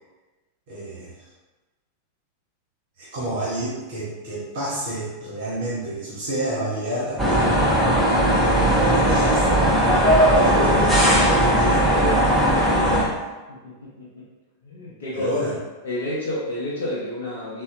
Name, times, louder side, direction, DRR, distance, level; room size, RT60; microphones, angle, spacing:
voice 1, 0.7-1.1 3.0-7.5 8.2-9.5 10.3-11.8 12.7-13.2 15.1-15.6, right 1 dB, 50° right, -6 dB, 0.9 m, -29 dB
sound 1, 7.2-13.0, equal, 5° right, 0.6 m, -18 dB
voice 2, 13.5-14.3 14.6-15.3 15.8-17.6, left 1 dB, 60° left, -7 dB, 0.6 m, -30 dB
3.8 x 2.1 x 2.5 m, 1.2 s
figure-of-eight pair, 90°, 0 cm